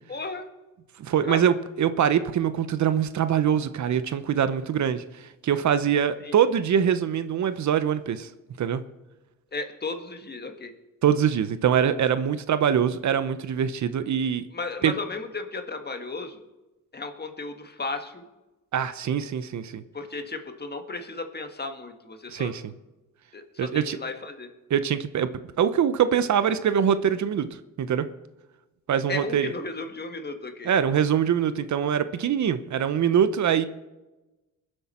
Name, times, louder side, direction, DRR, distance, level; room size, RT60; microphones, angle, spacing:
voice 1, 0.1-0.5 1.2-1.4 6.2-6.4 9.5-10.7 14.5-16.4 16.9-18.3 19.9-22.5 23.3-24.5 29.1-30.7, left 3 dB, 30° left, 6 dB, 1.7 m, -34 dB
voice 2, 1.0-8.3 8.6-8.8 11.0-14.5 14.8-14.9 18.7-19.8 22.3-22.6 23.6-24.0 24.7-25.3 25.6-28.1 28.9-29.5 30.7-33.6, right 8 dB, 60° right, 12 dB, 0.8 m, -23 dB
21.5 x 8.1 x 4.3 m, 1.1 s
cardioid pair, 80°, 33 cm